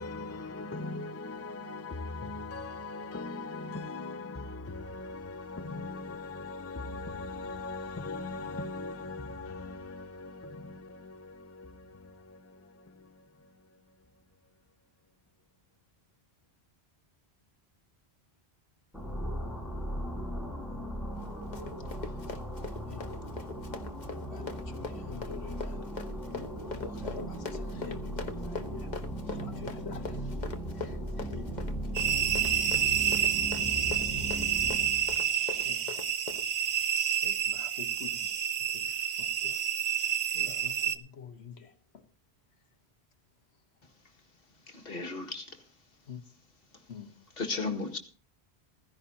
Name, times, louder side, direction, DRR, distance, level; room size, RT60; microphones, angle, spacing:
voice 1, 0.0-14.1, left 3 dB, 20° left, 0.5 m, -40 dB
sound 1, 18.9-35.1, equal, ahead, 5.0 m, -37 dB
Run, 21.2-36.5, left 4 dB, 45° left, 1.3 m, -42 dB
voice 2, 21.8-22.2 22.9-23.1 24.3-26.0 26.6-29.0 29.2-30.4 30.7-31.6 33.5-33.8 35.2-36.1 37.2-39.7 40.3-42.0 46.1-46.2 46.9-47.2, left 6 dB, 80° left, 1.5 m, -47 dB
sound 2, 31.9-41.0, right 9 dB, 65° right, 1.0 m, -29 dB
voice 3, 44.7-45.6 47.4-48.0, left 3 dB, 60° left, 2.1 m, -35 dB
15.5 x 15.5 x 2.8 m
omnidirectional pair, 1.1 m